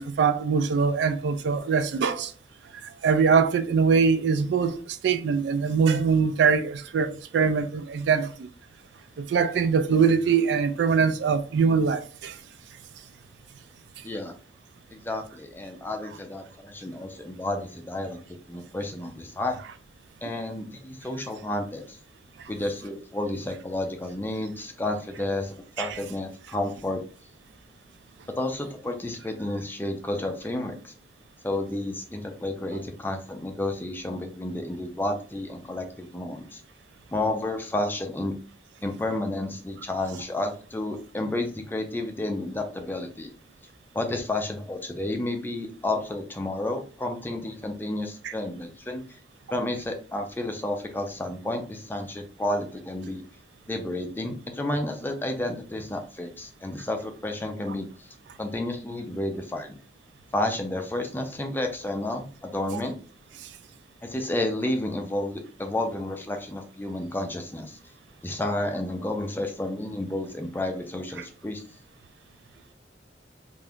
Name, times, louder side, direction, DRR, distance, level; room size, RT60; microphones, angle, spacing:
voice 1, 0.0-2.3 2.8-8.5 9.2-12.4 22.4-22.5 25.8-26.0 48.2-48.3 63.4-63.5, right 5 dB, 70° right, 0.3 m, -23 dB
voice 2, 14.0-14.3 14.9-18.2 18.5-19.6 20.2-22.0 22.5-27.0 28.4-30.9 31.4-36.6 37.1-38.3 38.8-43.3 43.9-49.0 49.5-53.2 53.7-59.8 60.3-62.9 64.0-67.8 68.2-71.6, left 1 dB, 10° left, 0.4 m, -31 dB
2.6 x 2.3 x 3.4 m
head